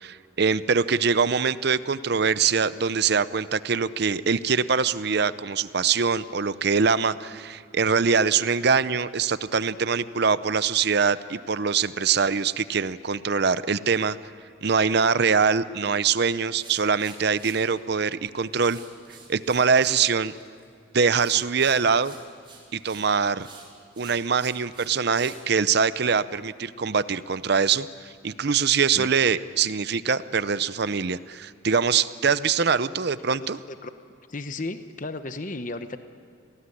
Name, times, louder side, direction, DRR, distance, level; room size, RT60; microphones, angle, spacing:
voice 1, 0.0-14.2 14.6-18.8 19.3-20.3 20.9-22.1 22.7-23.5 24.0-33.6, right 5 dB, 55° right, 15 dB, 0.6 m, -23 dB
sound 1, 16.5-17.6 18.5-20.0 20.3-20.7 21.1-23.1 23.4-25.4, right 4 dB, 25° right, 4.4 m, -48 dB
voice 2, 34.3-36.0, left 2 dB, 40° left, 9 dB, 1.0 m, -34 dB
28.0 x 19.0 x 9.9 m, 2.3 s
head